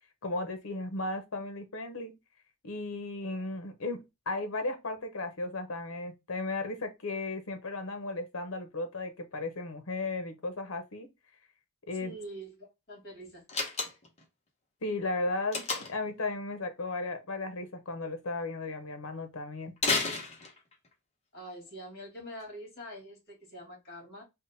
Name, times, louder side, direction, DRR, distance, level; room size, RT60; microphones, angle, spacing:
voice 1, 0.2-2.2 2.6-11.1 11.9-12.1 14.8-19.7, left 2 dB, 70° left, 0.8 m, -35 dB
voice 2, 12.0-13.4 21.3-24.2, equal, 50° left, 1.9 m, -45 dB
Slam, 13.5-14.2 15.5-16.1 19.8-20.9, left 3 dB, 30° left, 0.9 m, -31 dB
3.6 x 2.1 x 4.0 m
head